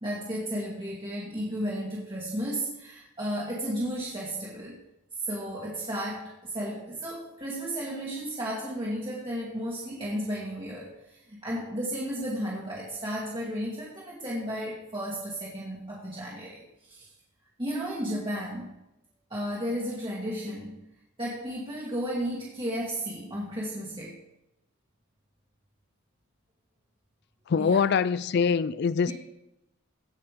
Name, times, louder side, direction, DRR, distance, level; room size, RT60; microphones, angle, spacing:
voice 1, 0.0-4.8 5.2-17.1 17.6-18.7 19.3-20.8 21.2-24.2 27.6-27.8 29.1-29.2, equal, 25° right, -6 dB, 2.1 m, -33 dB
voice 2, 27.5-29.1, left 6 dB, 50° left, 17 dB, 0.3 m, -24 dB
16.5 x 5.9 x 5.2 m, 0.88 s
head